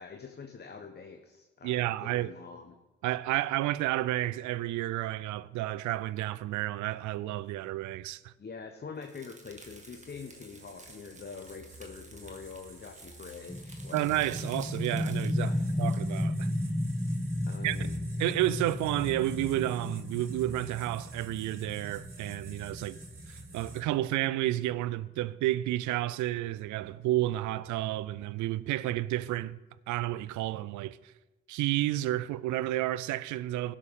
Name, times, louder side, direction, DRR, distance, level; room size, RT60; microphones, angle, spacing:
voice 1, 0.0-2.8 8.4-14.0 15.4-15.7 17.5-17.9, left 5 dB, 30° left, 1.0 m, -45 dB
voice 2, 1.6-2.3 3.0-8.3 13.9-16.5 17.6-17.8 18.2-23.0 23.3-29.6 29.9-31.0 31.5-33.8, right 15 dB, 70° right, 0.5 m, -31 dB
sound 1, 9.0-16.0, right 2 dB, 25° right, 1.9 m, -54 dB
sound 2, 9.4-23.8, right 2 dB, 40° right, 3.6 m, -50 dB
sound 3, 13.5-24.9, left 1 dB, ahead, 0.4 m, -34 dB
16.5 x 6.7 x 3.7 m
hypercardioid pair, 50°, 31 cm